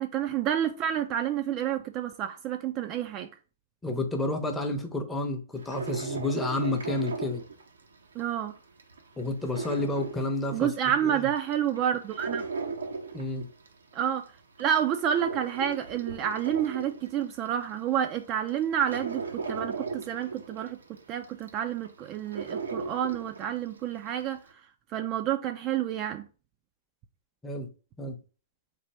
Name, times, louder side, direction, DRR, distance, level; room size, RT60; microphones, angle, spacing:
voice 1, 0.0-3.3 8.1-8.5 10.5-12.5 13.9-14.3 14.6-20.8 21.1-24.4 24.9-26.2, right 10 dB, 30° right, 0.4 m, -29 dB
voice 2, 3.8-7.4 9.2-11.3 13.1-13.5 27.4-27.7 28.0-28.2, left 2 dB, 10° left, 0.7 m, -30 dB
sound 1, 5.6-8.2 8.6-10.9 11.3-13.9 14.4-17.5 18.0-18.1 18.5-23.7 24.0-24.1, right 4 dB, 85° right, 0.8 m, -37 dB
3.3 x 2.5 x 4.2 m
hypercardioid pair, 130°, 0 cm